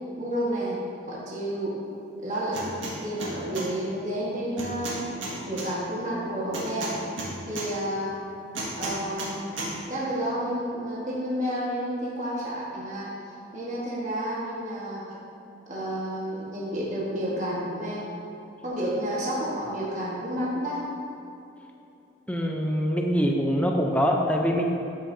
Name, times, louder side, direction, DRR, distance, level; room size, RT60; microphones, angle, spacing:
voice 1, 0.2-0.8 1.1-1.7 2.2-2.8 3.0-5.1 5.4-7.0 7.4-8.1 8.8-13.1 13.5-15.2 15.7-18.1 18.6-20.8, equal, 40° right, -7 dB, 1.6 m, -30 dB
sound 1, 2.5-2.9 3.2-3.7 4.6-5.7 6.5-7.7 8.5-9.3 9.6-9.7, right 2 dB, 80° right, 1.9 m, -33 dB
voice 2, 22.3-24.6, equal, 5° left, 0 dB, 0.6 m, -24 dB
12.5 x 6.3 x 2.8 m, 2.9 s
head